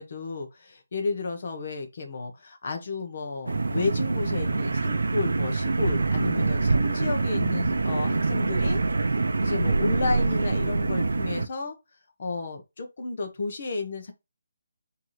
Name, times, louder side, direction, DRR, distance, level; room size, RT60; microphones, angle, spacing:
voice 1, 0.0-8.8 9.4-11.8 12.2-14.1, left 3 dB, 40° left, 1.0 m, -32 dB
sound 1, 3.5-11.5, right 3 dB, 85° right, 0.5 m, -25 dB
4.5 x 2.9 x 3.1 m
hypercardioid pair, 175°, 0 cm